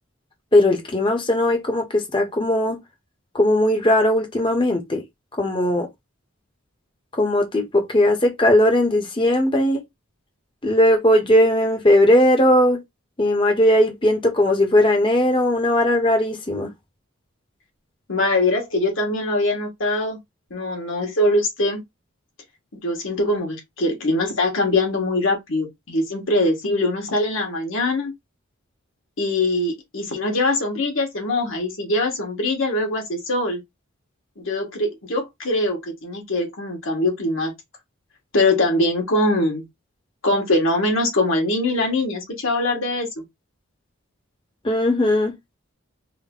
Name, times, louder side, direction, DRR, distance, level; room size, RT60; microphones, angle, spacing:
voice 1, 0.5-2.8 3.3-5.0 5.4-5.9 7.2-9.8 10.6-12.8 13.2-16.7 44.6-45.3, left 1 dB, 25° left, 0.8 m, -18 dB
voice 2, 18.1-20.2 20.5-21.8 22.7-28.1 29.2-33.6 34.4-37.5 38.3-39.6 40.2-43.2, left 2 dB, 70° left, 1.5 m, -22 dB
3.7 x 2.1 x 3.7 m
head